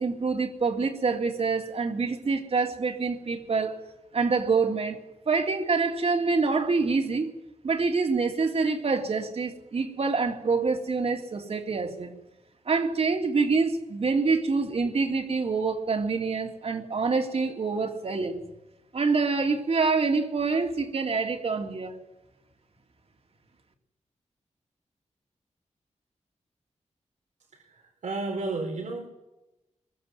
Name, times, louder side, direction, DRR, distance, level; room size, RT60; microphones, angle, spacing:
voice 1, 0.0-3.8 4.1-5.0 5.3-7.3 7.6-12.1 12.7-18.4 18.9-22.0, right 4 dB, 55° right, 4 dB, 3.2 m, -26 dB
voice 2, 27.5-29.0, right 3 dB, 85° right, 0 dB, 4.3 m, -32 dB
25.5 x 22.5 x 7.8 m, 0.99 s
wide cardioid pair, 120°, 12 cm